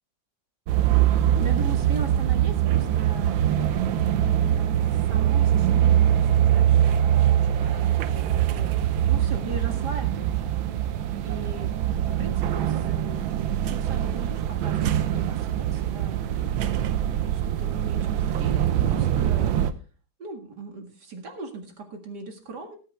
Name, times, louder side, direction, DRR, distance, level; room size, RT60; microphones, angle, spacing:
sound 1, 0.7-19.7, right 11 dB, 80° right, 1.6 m, -23 dB
voice 1, 1.4-4.2 4.6-6.1 6.4-10.6 11.2-11.8 12.2-19.7 20.2-22.8, right 3 dB, 55° right, 4 dB, 2.4 m, -40 dB
18.5 x 8.2 x 3.4 m, 0.38 s
omnidirectional pair, 2.1 m